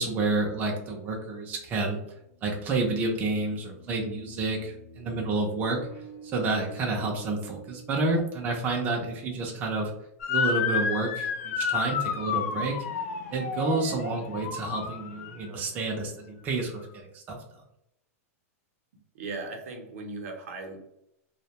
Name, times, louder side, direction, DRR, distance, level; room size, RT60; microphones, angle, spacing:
voice 1, 0.0-2.0 2.4-5.8 6.3-9.9 10.3-12.8 13.3-17.4, right 3 dB, 20° right, -1 dB, 0.4 m, -29 dB
sound 1, 2.4-9.2, right 3 dB, 25° left, 0.6 m, -49 dB
Motor vehicle (road) / Siren, 10.2-15.5, left 6 dB, 70° left, 0.4 m, -30 dB
voice 2, 19.1-20.9, right 3 dB, 65° right, 3 dB, 0.6 m, -38 dB
2.3 x 2.1 x 2.8 m, 0.80 s
supercardioid pair, 155°, 8 cm